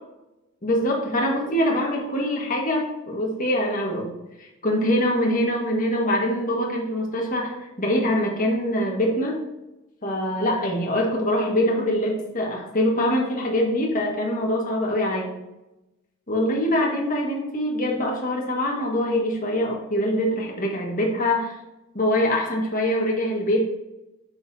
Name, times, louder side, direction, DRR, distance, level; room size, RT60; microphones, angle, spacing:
voice 1, 0.6-4.1 4.4-9.4 10.0-15.3 16.3-21.5 21.9-23.6, left 1 dB, 35° left, -1 dB, 1.6 m, -24 dB
7.4 x 6.9 x 2.7 m, 0.97 s
head